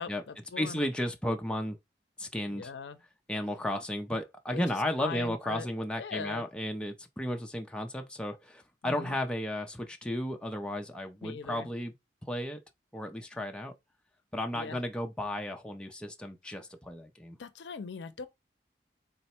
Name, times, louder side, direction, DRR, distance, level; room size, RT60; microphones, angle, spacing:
voice 1, 0.0-0.8 2.5-3.0 4.5-4.6 5.0-5.7 6.0-6.5 8.8-9.2 11.2-11.7 14.5-14.8 17.4-18.3, left 5 dB, 80° left, 0.5 m, -40 dB
voice 2, 0.6-1.8 2.2-2.7 3.3-11.9 12.2-12.6 12.9-13.7 14.3-17.4, left 1 dB, 5° left, 0.4 m, -34 dB
3.9 x 2.1 x 4.2 m
head